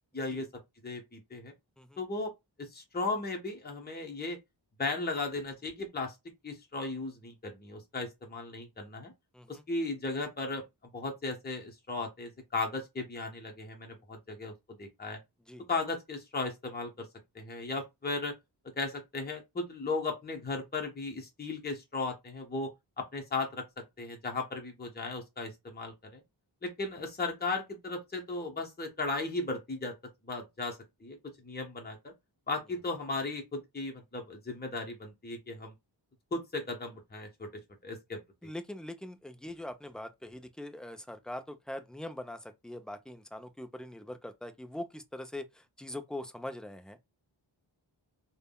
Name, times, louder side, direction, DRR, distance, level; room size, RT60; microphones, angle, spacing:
voice 1, 0.1-0.5 0.8-1.5 2.0-2.3 2.6-4.4 4.8-6.2 6.4-9.1 9.5-10.6 10.9-14.5 14.8-15.2 15.7-17.1 17.3-18.3 18.8-22.7 23.0-23.6 24.0-26.2 26.6-29.9 30.2-31.2 31.4-32.1 32.5-35.7 36.3-37.5 37.8-38.2, left 3 dB, 20° left, 0.8 m, -36 dB
voice 2, 9.3-9.6 15.5-15.7 38.4-47.0, left 1 dB, ahead, 0.4 m, -42 dB
3.4 x 2.2 x 2.2 m
wide cardioid pair, 60°, 46 cm